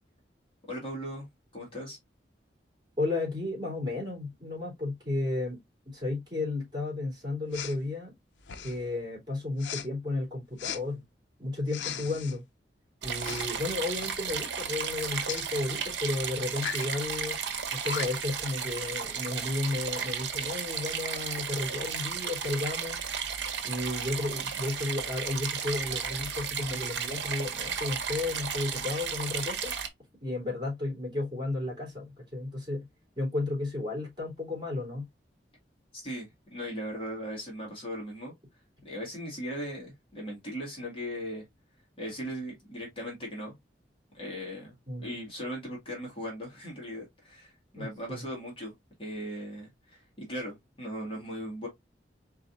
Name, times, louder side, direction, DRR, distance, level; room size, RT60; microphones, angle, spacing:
voice 1, 0.7-1.3 1.5-2.0 35.9-38.3 38.8-41.4 42.0-43.5 44.1-48.7 49.0-51.7, equal, 30° left, 1.9 m, -38 dB
voice 2, 3.0-5.6 5.8-8.1 8.6-11.0 11.4-12.4 13.0-17.4 17.7-23.0 23.6-29.7 30.2-32.8 33.1-35.1 44.9-45.1 47.7-48.3, left 2 dB, 25° right, 2.9 m, -33 dB
Respiratory sounds, 7.5-7.8 8.4-8.9 9.6-9.9 10.6-10.8 11.7-12.4 13.2-13.6 13.9-14.2 15.3-15.5 16.5-16.9 17.5-17.6 17.8-18.3, left 8 dB, 85° left, 0.6 m, -37 dB
sound 1, 13.0-29.9, right 7 dB, 75° right, 0.8 m, -34 dB
4.2 x 3.9 x 2.5 m
head